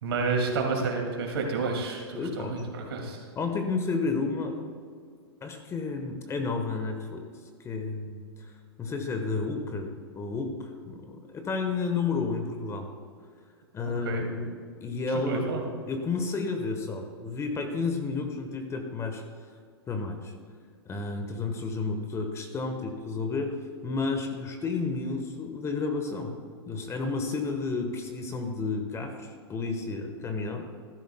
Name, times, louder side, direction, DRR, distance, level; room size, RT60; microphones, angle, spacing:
voice 1, 0.0-3.2 14.0-14.3 15.3-15.6, right 4 dB, 65° right, 1 dB, 2.4 m, -30 dB
voice 2, 2.1-2.6 3.3-4.6 5.4-7.3 7.6-8.5 8.8-12.9 13.7-14.5 14.8-15.4 15.9-19.2 19.9-20.3 20.8-23.6 23.8-26.3 26.6-30.7, left 4 dB, 20° left, 5 dB, 1.2 m, -31 dB
14.0 x 12.0 x 2.3 m, 2.1 s
hypercardioid pair, 110°, 14 cm